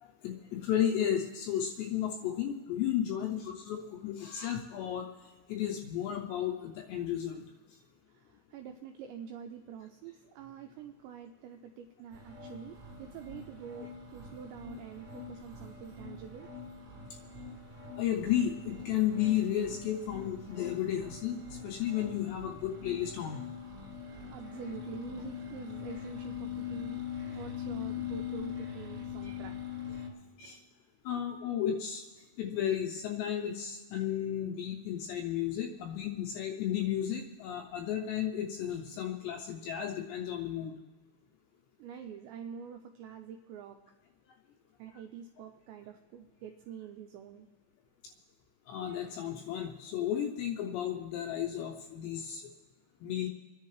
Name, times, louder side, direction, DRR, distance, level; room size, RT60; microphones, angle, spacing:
voice 1, 0.0-5.1 5.5-7.4 18.0-23.4 29.2-29.3 30.4-30.6 31.1-32.1 32.4-40.7 48.7-52.4 53.0-53.3, left 10 dB, 80° left, 2 dB, 2.6 m, -33 dB
voice 2, 8.1-16.5 24.3-29.5 33.4-33.5 41.8-43.8 44.8-47.5, right 8 dB, 90° right, 5 dB, 2.5 m, -46 dB
sound 1, 12.1-30.1, left 7 dB, 35° right, 1.9 m, -42 dB
29.5 x 10.5 x 3.2 m, 1.3 s
omnidirectional pair, 5.7 m